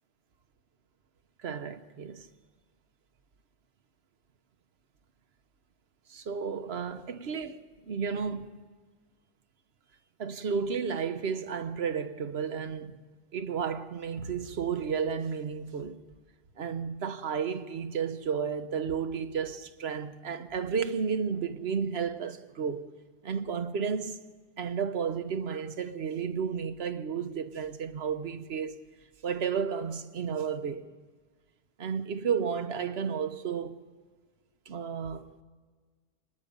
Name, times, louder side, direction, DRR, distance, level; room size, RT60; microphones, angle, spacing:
voice 1, 1.4-2.3 6.1-8.6 10.2-12.9 13.3-16.1 16.6-22.9 23.2-24.2 24.6-28.8 29.2-30.9 31.8-33.8 34.7-35.3, right 6 dB, 85° right, 1.2 m, -32 dB
25.0 x 19.5 x 5.3 m
omnidirectional pair, 1.0 m